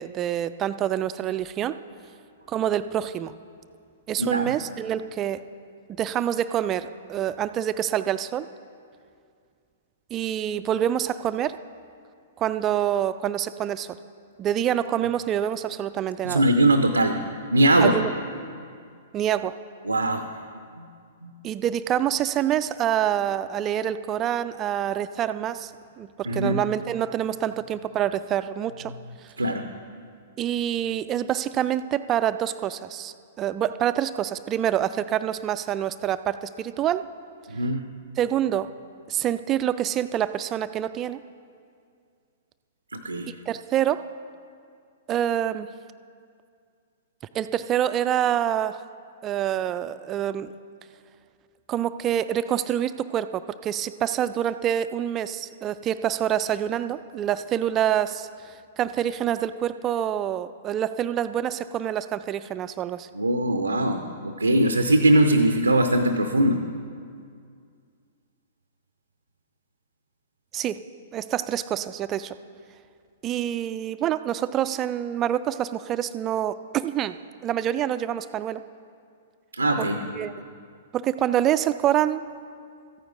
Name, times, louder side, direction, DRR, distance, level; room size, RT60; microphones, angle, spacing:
voice 1, 0.0-1.8 2.5-3.3 4.1-5.4 6.0-8.5 10.1-11.6 12.4-14.0 14.4-16.5 17.8-18.1 19.1-19.6 21.4-25.7 26.0-28.9 30.4-37.0 38.2-38.7 39.1-41.2 43.3-44.1 45.1-45.7 47.3-48.8 49.2-50.5 51.7-63.1 70.5-70.8 71.1-72.4 73.2-77.2 77.4-78.6 79.8-80.3 80.9-82.2, right 10 dB, 25° right, 13 dB, 0.3 m, -26 dB
voice 2, 4.2-4.5 16.2-17.2 17.5-18.0 19.9-20.2 20.8-20.9 21.2-21.3 26.3-26.6 29.4-29.6 37.5-37.9 42.9-43.3 63.1-66.6 79.5-80.0, right 1 dB, 85° right, 7 dB, 0.5 m, -21 dB
14.0 x 9.4 x 3.9 m, 2.2 s
figure-of-eight pair, 110°, 0 cm